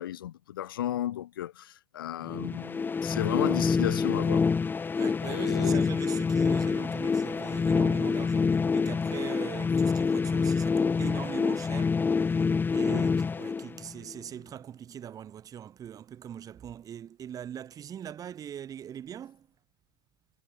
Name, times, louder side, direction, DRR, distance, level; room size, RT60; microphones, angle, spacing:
voice 1, 0.0-4.5 5.2-5.8 12.9-13.1, left 12 dB, 70° left, 6.0 m, -34 dB
sound 1, 2.3-14.2, left 5 dB, 15° left, 1.4 m, -27 dB
voice 2, 5.0-12.0 12.7-19.5, right 9 dB, 30° right, 3.4 m, -41 dB
hypercardioid pair, 90°, 12 cm